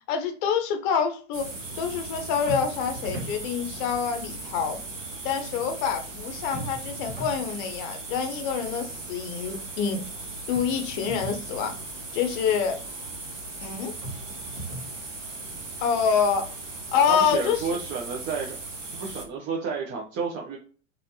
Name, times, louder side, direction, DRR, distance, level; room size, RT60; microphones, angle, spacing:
voice 1, 0.1-1.5 1.8-4.8 5.2-10.1 10.5-11.7 12.1-12.8 13.6-13.9 15.8-16.5 16.9-17.6, left 7 dB, 40° left, 7 dB, 0.6 m, -26 dB
sound 1, 1.3-19.3, right 2 dB, 85° right, 0.9 m, -38 dB
sound 2, 2.5-3.4 6.5-7.4 10.5-11.4 14.0-14.9, right 1 dB, 65° right, 1.6 m, -37 dB
voice 2, 17.1-18.6 19.0-20.6, right 5 dB, 30° right, -2 dB, 0.7 m, -31 dB
3.2 x 2.6 x 2.7 m, 0.39 s
figure-of-eight pair, 90°, 37 cm